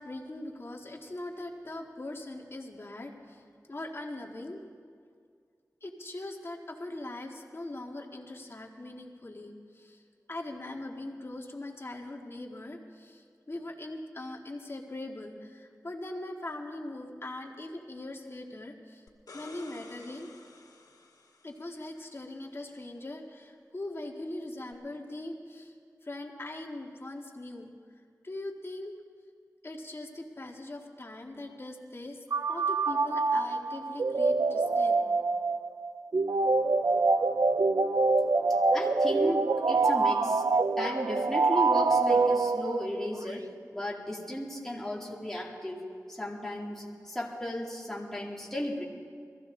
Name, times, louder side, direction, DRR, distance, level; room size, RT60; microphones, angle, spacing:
voice 1, 0.0-4.6 5.8-10.0 10.3-19.0 19.3-20.3 21.4-25.7 26.0-27.7 28.2-29.0 29.6-32.2 32.5-35.0, left 2 dB, 40° left, 1 dB, 1.7 m, -41 dB
sound 1, 19.1-21.9 24.7-24.8, left 2 dB, 85° left, 1.9 m, -52 dB
sound 2, 32.3-43.0, right 3 dB, 65° right, 0.5 m, -25 dB
voice 2, 38.7-40.4 40.8-45.8 46.1-48.8, left 1 dB, 5° left, -3 dB, 2.4 m, -35 dB
22.0 x 15.5 x 3.8 m, 2.1 s
wide cardioid pair, 90°, 6 cm